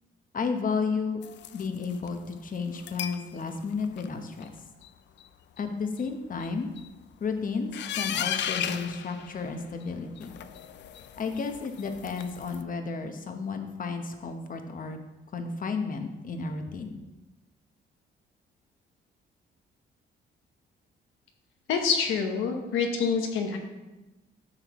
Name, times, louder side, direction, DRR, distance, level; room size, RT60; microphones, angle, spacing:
voice 1, 0.3-1.2 1.5-4.5 5.6-6.7 7.2-10.3 11.1-15.0 15.3-16.9, left 4 dB, 45° left, 6 dB, 1.0 m, -32 dB
sound 1, 1.2-2.1 2.8-3.3 3.6-4.1 4.4-4.5 4.8-4.9 5.2-5.3 5.6-5.7 6.0-6.1 6.4-6.9 7.7-9.8 10.2-12.6, left 9 dB, 65° left, 0.5 m, -36 dB
voice 2, 21.7-23.6, left 6 dB, 90° left, 3 dB, 1.2 m, -26 dB
9.8 x 6.5 x 3.1 m, 1.1 s
cardioid pair, 90°, 20 cm